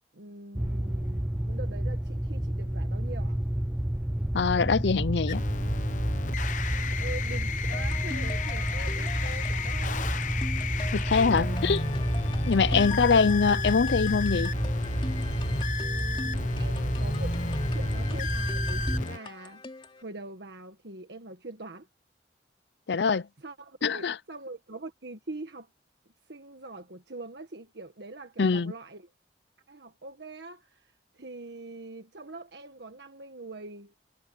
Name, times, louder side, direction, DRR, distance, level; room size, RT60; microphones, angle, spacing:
voice 1, 0.1-3.4 6.7-10.4 11.3-11.6 12.7-13.1 15.7-17.4 17.7-19.6 20.0-21.9 23.4-25.7 26.3-29.1 29.7-34.0, right 2 dB, 75° right, 1.6 m, -43 dB
sound 1, 0.5-19.0, right 1 dB, 5° right, 0.3 m, -30 dB
voice 2, 4.3-5.4 10.9-11.8 12.5-14.5 22.9-23.3 23.8-24.2 28.4-28.7, left 5 dB, 75° left, 0.6 m, -24 dB
sound 2, 5.3-19.2, left 5 dB, 45° left, 0.9 m, -34 dB
sound 3, 7.7-20.0, left 2 dB, 30° left, 2.9 m, -43 dB
head